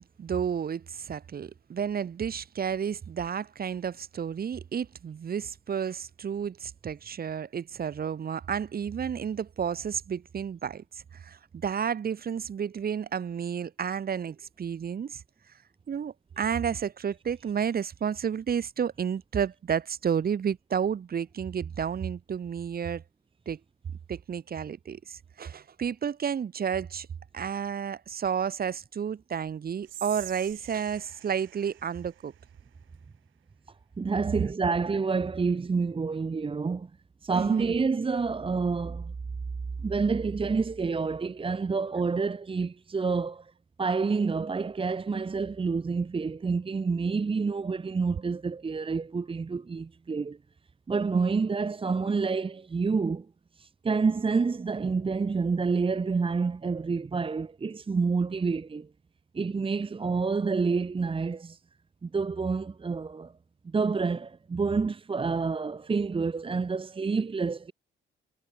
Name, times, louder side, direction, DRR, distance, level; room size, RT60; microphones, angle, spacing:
voice 1, 0.0-15.2 15.9-23.0 23.5-23.6 24.1-27.1 27.3-32.3 37.3-37.8, right 7 dB, 50° right, 3.0 m, -31 dB
Whispering, 29.8-33.0, right 13 dB, 80° right, 3.6 m, -46 dB
voice 2, 34.0-36.9 37.2-39.1 39.8-43.5 43.8-50.4 50.9-53.3 53.6-58.9 59.3-61.6 62.0-63.3 63.6-67.7, right 4 dB, 25° right, 1.2 m, -28 dB
cardioid pair, 90°, 20 cm